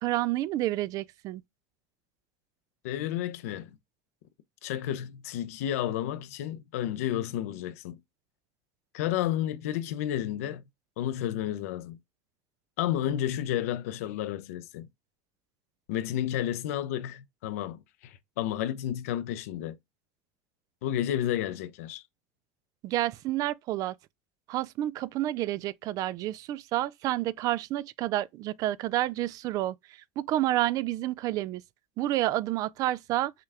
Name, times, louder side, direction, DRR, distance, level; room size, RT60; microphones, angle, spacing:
voice 1, 0.0-1.4 22.8-23.9 24.5-29.7 30.2-31.6 32.0-33.3, right 14 dB, 50° right, 0.3 m, -29 dB
voice 2, 2.8-3.7 4.6-8.0 8.9-10.6 11.0-12.0 12.8-14.9 15.9-19.8 20.8-22.0, left 11 dB, 90° left, 0.6 m, -31 dB
5.7 x 2.3 x 3.3 m
supercardioid pair, 120°, 8 cm